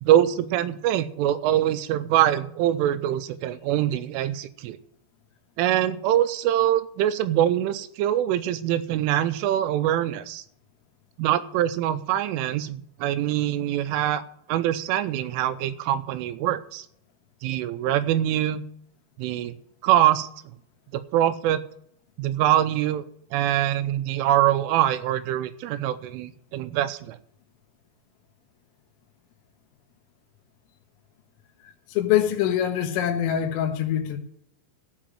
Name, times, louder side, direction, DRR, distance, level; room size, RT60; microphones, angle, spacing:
voice 1, 0.0-4.8 5.6-10.4 11.2-14.2 14.5-16.9 17.4-18.6 19.2-19.6 19.8-20.3 20.9-21.6 22.2-23.0 23.3-27.2, right 12 dB, 80° right, 3.1 m, -24 dB
voice 2, 31.9-34.2, left 10 dB, 80° left, 3.9 m, -24 dB
15.0 x 5.1 x 8.9 m
omnidirectional pair, 5.9 m